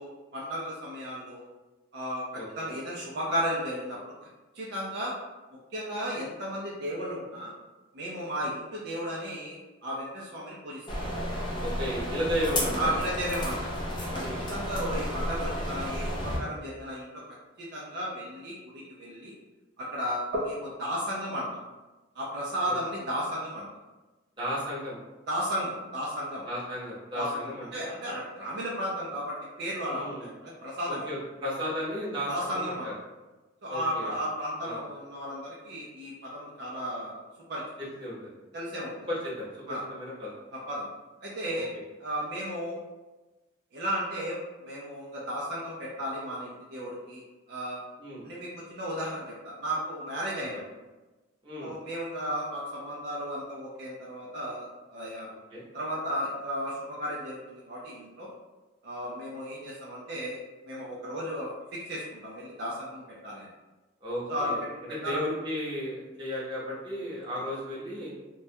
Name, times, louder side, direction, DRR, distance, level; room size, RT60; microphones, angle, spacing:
voice 1, 0.0-1.5 1.9-2.3 2.6-4.1 4.5-5.1 5.7-7.5 7.9-11.0 12.8-13.7 14.1-14.2 14.5-17.3 17.7-18.6 18.9-19.3 19.8-21.5 22.2-23.7 25.3-26.4 27.1-31.1 32.3-32.9 33.6-37.2 37.5-37.6 38.5-39.1 39.7-39.8 40.7-40.9 41.2-41.7 42.0-42.8 43.7-44.4 44.6-47.2 47.5-47.8 48.2-50.6 51.6-55.3 55.7-58.3 58.8-60.4 60.6-61.5 61.9-63.5 64.3-64.5 65.0-65.2, equal, 55° right, -5 dB, 0.4 m, -34 dB
voice 2, 2.3-2.7 11.6-12.9 14.2-14.4 22.6-22.7 24.4-25.0 26.4-27.7 29.8-30.3 30.9-32.9 33.7-34.2 34.6-34.8 37.8-38.4 39.1-40.3 41.7-41.8 48.0-48.2 51.4-51.7 55.5-55.6 64.0-64.6 64.9-68.1, equal, 25° right, -8 dB, 0.7 m, -34 dB
sound 1, 10.9-16.4, equal, 25° left, 0.4 m, -32 dB
2.2 x 2.1 x 2.7 m, 1.1 s
head